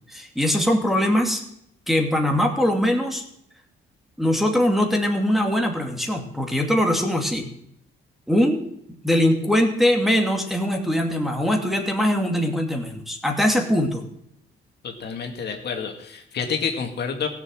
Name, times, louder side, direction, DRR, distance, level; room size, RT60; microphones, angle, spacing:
voice 1, 0.1-1.4 1.9-3.2 4.2-7.5 8.3-8.6 9.0-14.0, equal, ahead, 2 dB, 2.4 m, -21 dB
voice 2, 14.8-17.3, left 6 dB, 55° left, 3 dB, 2.2 m, -29 dB
15.5 x 7.0 x 7.7 m, 0.73 s
cardioid pair, 90°, 20 cm